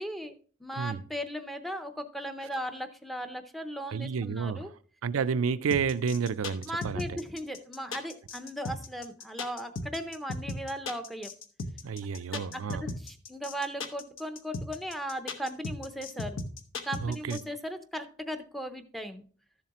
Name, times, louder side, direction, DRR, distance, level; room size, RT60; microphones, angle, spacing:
voice 1, 0.0-4.7 6.7-11.3 12.3-16.4 16.8-19.2, equal, ahead, 0.6 m, -37 dB
voice 2, 3.9-4.7 5.0-7.2 11.8-12.8 17.0-17.4, right 6 dB, 85° right, 0.4 m, -30 dB
sound 1, 5.7-17.4, left 3 dB, 75° left, 1.0 m, -36 dB
13.0 x 7.3 x 2.9 m
head